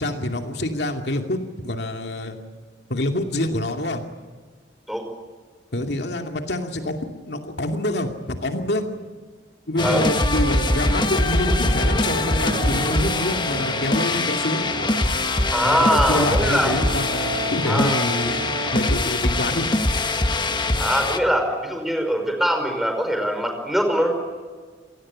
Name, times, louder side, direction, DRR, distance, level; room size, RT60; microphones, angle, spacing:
voice 1, 0.0-1.4 1.6-2.4 2.9-4.0 5.7-8.8 9.7-14.7 15.6-18.4 18.7-19.7, left 1 dB, 65° left, 4 dB, 2.6 m, -26 dB
sound 1, 9.8-21.2, left 2 dB, 25° left, 1.4 m, -23 dB
sound 2, 10.3-19.0, right 2 dB, 75° right, 1.7 m, -34 dB
voice 2, 15.5-16.7 17.7-18.1 20.8-24.1, equal, ahead, 4 dB, 5.3 m, -22 dB
27.5 x 19.0 x 8.7 m, 1.5 s
head